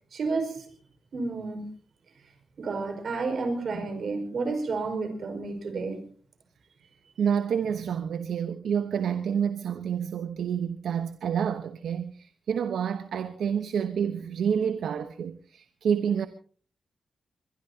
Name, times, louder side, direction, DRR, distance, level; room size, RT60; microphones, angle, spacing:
voice 1, 0.1-0.7 1.1-1.7 2.6-6.0, right 3 dB, 65° right, 5.2 m, -31 dB
voice 2, 7.2-16.3, right 7 dB, 80° right, 1.0 m, -28 dB
23.5 x 22.0 x 2.9 m
cardioid pair, 80°, 0 cm